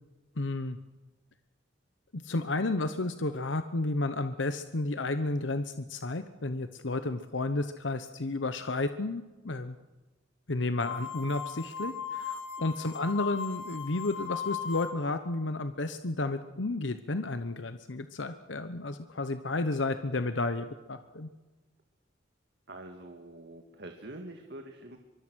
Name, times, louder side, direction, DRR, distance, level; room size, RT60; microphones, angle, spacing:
voice 1, 0.4-0.8 2.1-9.8 10.5-21.3, left 2 dB, 90° left, 10 dB, 1.1 m, -32 dB
sound 1, 10.8-15.2, left 7 dB, 70° left, 2.5 m, -38 dB
voice 2, 22.7-25.0, right 1 dB, 65° right, 4 dB, 2.1 m, -45 dB
24.0 x 23.5 x 6.4 m, 1.2 s
head